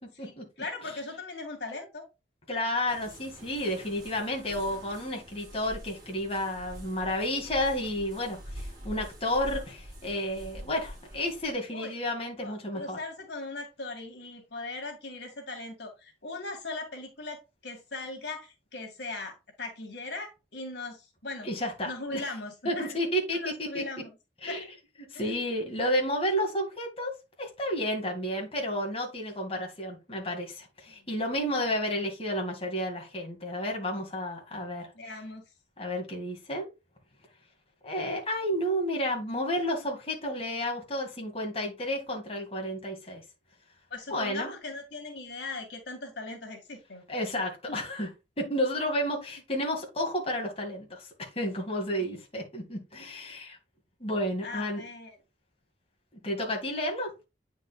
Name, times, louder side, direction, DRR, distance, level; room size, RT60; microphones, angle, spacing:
voice 1, 0.2-2.0 9.5-9.6 11.7-11.9 12.4-21.5 21.9-23.0 23.3-24.1 24.5-24.6 25.1-25.3 30.9-31.1 34.9-35.4 43.9-47.0 52.0-52.2 54.4-55.2, left 3 dB, 75° left, 2.2 m, -39 dB
voice 2, 2.5-13.0 21.4-22.2 22.6-23.8 24.4-24.7 25.1-27.1 27.4-34.9 35.8-36.7 37.8-43.2 44.1-44.5 47.1-48.1 48.4-53.6 54.0-54.8 56.2-57.2, equal, 35° left, 2.3 m, -31 dB
sound 1, 2.9-11.5, equal, 25° right, 4.0 m, -45 dB
9.1 x 5.3 x 2.4 m
head